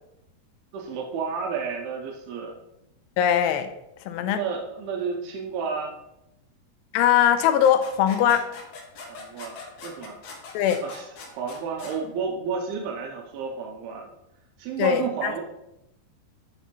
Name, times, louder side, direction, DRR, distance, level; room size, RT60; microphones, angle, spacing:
voice 1, 0.7-2.6 4.2-5.9 9.1-10.2 10.8-14.1 14.6-15.4, right 5 dB, 80° right, 0 dB, 2.5 m, -31 dB
voice 2, 3.2-3.7 4.1-4.4 6.9-8.5 10.5-10.8 14.8-15.3, left 9 dB, 85° left, 8 dB, 2.7 m, -21 dB
sound 1, 7.1-12.0, left 4 dB, 65° left, 2.0 m, -41 dB
10.0 x 5.7 x 3.0 m, 0.86 s
omnidirectional pair, 4.8 m